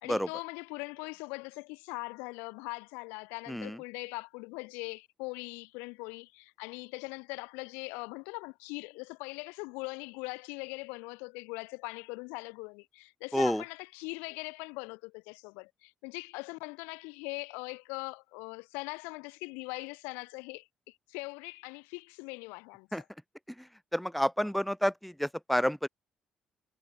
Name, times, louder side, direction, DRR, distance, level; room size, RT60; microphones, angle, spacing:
voice 1, 0.0-22.9, left 30 dB, 75° left, 2.9 m, -41 dB
voice 2, 3.5-3.8 13.3-13.6 22.9-23.0 23.6-25.9, equal, ahead, 3.5 m, -30 dB
hypercardioid pair, 45°, 3 cm